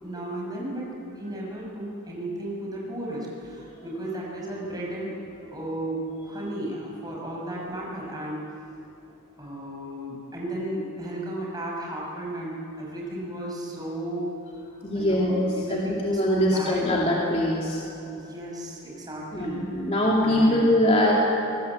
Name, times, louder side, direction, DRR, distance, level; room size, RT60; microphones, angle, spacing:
voice 1, 0.0-5.2 5.5-8.5 9.4-14.3 14.9-16.9 18.1-19.6 20.2-20.7, right 1 dB, 20° right, -3 dB, 6.3 m, -34 dB
voice 2, 14.8-17.8 19.3-21.1, left 1 dB, 30° left, -3 dB, 2.6 m, -23 dB
24.0 x 19.0 x 8.2 m, 2.7 s
head